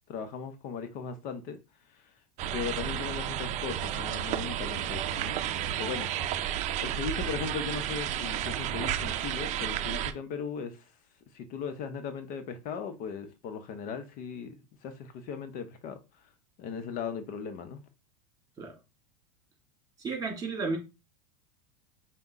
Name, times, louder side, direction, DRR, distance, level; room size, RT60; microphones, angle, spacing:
voice 1, 0.1-1.6 1.9-2.0 2.5-5.4 5.8-6.4 6.8-10.8 11.3-14.5 14.8-16.0 16.6-17.8, left 6 dB, 50° left, 0.7 m, -38 dB
sound 1, 2.4-10.1, right 10 dB, 40° right, 0.5 m, -32 dB
voice 2, 20.0-20.8, right 4 dB, 20° right, 2.1 m, -32 dB
5.4 x 2.2 x 3.6 m
supercardioid pair, 115°, 18 cm